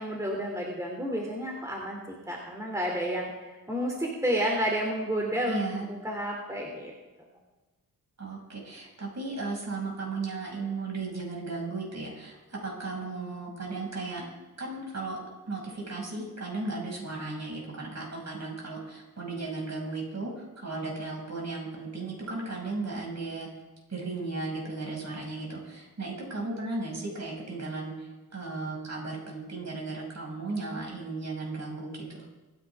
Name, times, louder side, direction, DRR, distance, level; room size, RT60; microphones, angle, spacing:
voice 1, 0.0-2.0 2.3-5.6 5.8-6.9, equal, 10° right, -1 dB, 2.9 m, -30 dB
voice 2, 5.5-5.9 8.2-14.3 14.6-23.5 23.9-32.2, right 3 dB, 45° right, -2 dB, 6.2 m, -35 dB
25.0 x 10.5 x 3.6 m, 1.2 s
wide cardioid pair, 85°, 38 cm